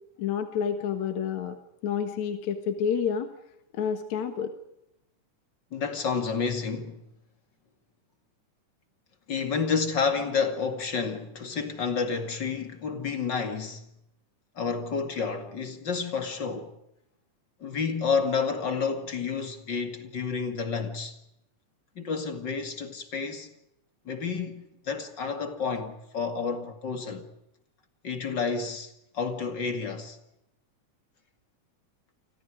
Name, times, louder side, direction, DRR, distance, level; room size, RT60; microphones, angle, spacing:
voice 1, 0.2-1.6 1.8-3.3 3.7-4.5, left 7 dB, 65° left, 2.8 m, -29 dB
voice 2, 5.7-7.0 9.3-13.8 14.6-16.7 17.6-21.2 22.0-23.5 24.0-27.3 28.0-30.2, left 5 dB, 35° left, 2.6 m, -30 dB
30.0 x 25.5 x 5.0 m
omnidirectional pair, 3.6 m